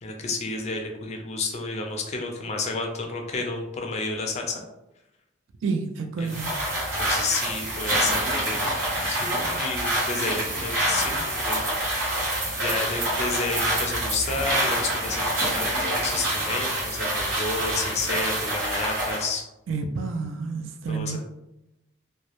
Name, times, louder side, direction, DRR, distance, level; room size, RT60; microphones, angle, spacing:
voice 1, 0.0-4.6 6.2-6.3 7.0-8.8 9.0-12.3 12.6-19.4 20.9-21.2, left 3 dB, 35° left, 2 dB, 0.4 m, -31 dB
voice 2, 5.6-6.5 19.7-21.2, right 4 dB, 85° right, 6 dB, 0.3 m, -29 dB
sound 1, 6.3-19.3, right 1 dB, 70° right, 0.9 m, -26 dB
2.2 x 2.0 x 2.8 m, 0.90 s
head